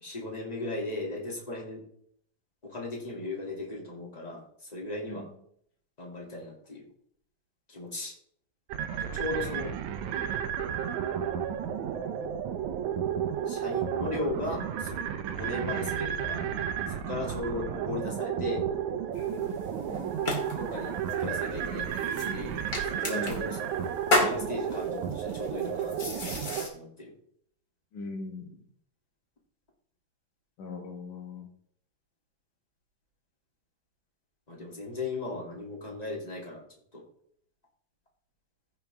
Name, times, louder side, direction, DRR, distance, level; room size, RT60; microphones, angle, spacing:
voice 1, 0.0-1.8 2.6-5.3 6.0-6.8 7.7-8.1 8.9-9.7 13.5-15.0 15.2-16.5 16.9-18.6 20.6-20.9 21.2-22.5 22.8-23.6 24.2-26.4 26.7-27.1 34.5-36.6 36.9-37.0, left 2 dB, 15° left, -3 dB, 2.3 m, -37 dB
sound 1, 8.7-26.7, right 8 dB, 70° right, 2.0 m, -32 dB
sound 2, 19.1-26.7, left 1 dB, 30° left, 2.2 m, -34 dB
voice 2, 23.1-23.4 27.9-28.6 30.6-31.5, left 3 dB, 70° left, 3 dB, 2.9 m, -40 dB
15.5 x 5.9 x 3.5 m, 0.64 s
omnidirectional pair, 3.9 m